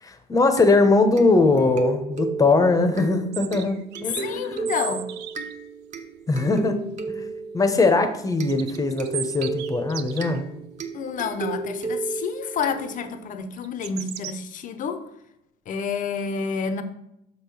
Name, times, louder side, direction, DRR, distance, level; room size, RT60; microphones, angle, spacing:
voice 1, 0.0-4.7 6.3-6.8 7.1-10.5, left 3 dB, 20° left, 7 dB, 0.9 m, -21 dB
sound 1, 0.6-13.3, right 4 dB, 45° right, 0.9 m, -34 dB
sound 2, 3.3-5.5 8.3-10.4 11.9-12.1 13.6-14.3, right 11 dB, 80° right, 0.4 m, -36 dB
voice 2, 4.2-5.2 10.9-15.0 15.7-16.8, left 6 dB, 50° left, 9 dB, 0.7 m, -29 dB
6.2 x 3.7 x 6.1 m, 0.81 s
cardioid pair, 110°, 17 cm